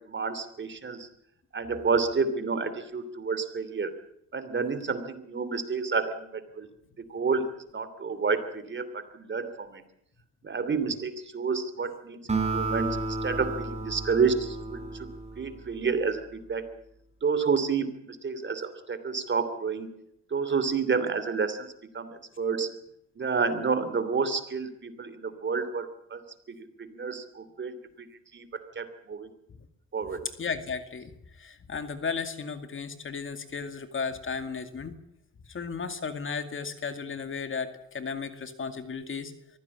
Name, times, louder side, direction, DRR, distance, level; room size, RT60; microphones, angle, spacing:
voice 1, 0.1-1.1 1.5-3.9 4.3-6.7 7.1-7.5 7.7-9.8 10.4-13.0 13.2-15.1 15.4-16.7 17.2-19.9 20.3-21.7 21.9-22.7 23.2-26.2 26.5-28.1 28.3-28.4 28.8-29.3 29.9-30.3, right 5 dB, 40° right, 12 dB, 2.9 m, -29 dB
Acoustic guitar, 12.3-15.9, right 3 dB, 20° right, 7.1 m, -32 dB
voice 2, 30.4-31.1 31.4-34.9 35.5-39.3, left 5 dB, 40° left, 9 dB, 2.2 m, -34 dB
23.5 x 15.5 x 8.6 m, 0.75 s
cardioid pair, 90°, 30 cm